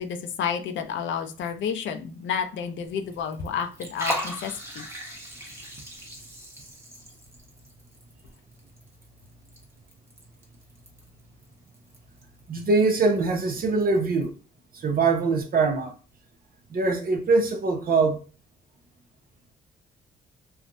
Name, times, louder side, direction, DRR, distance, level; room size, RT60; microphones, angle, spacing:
voice 1, 0.0-4.8, left 7 dB, 70° left, 0.6 m, -30 dB
Liquid, 2.9-14.3, equal, 15° right, 1.1 m, -40 dB
voice 2, 12.5-14.3 14.7-15.9 16.7-18.2, right 3 dB, 45° right, 0.8 m, -23 dB
3.4 x 2.3 x 2.5 m
cardioid pair, 90°, 20 cm